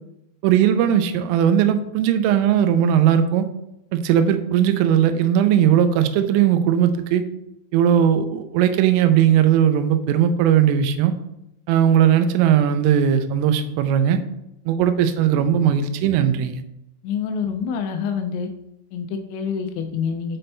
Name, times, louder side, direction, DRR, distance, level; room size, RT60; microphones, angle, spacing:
voice 1, 0.4-3.5 3.9-7.2 7.7-11.1 11.7-14.2 14.7-16.6, right 9 dB, 85° right, 9 dB, 3.1 m, -18 dB
voice 2, 17.0-18.5 18.9-20.4, left 6 dB, 90° left, 5 dB, 2.5 m, -26 dB
7.6 x 4.2 x 3.3 m, 0.84 s
omnidirectional pair, 5.8 m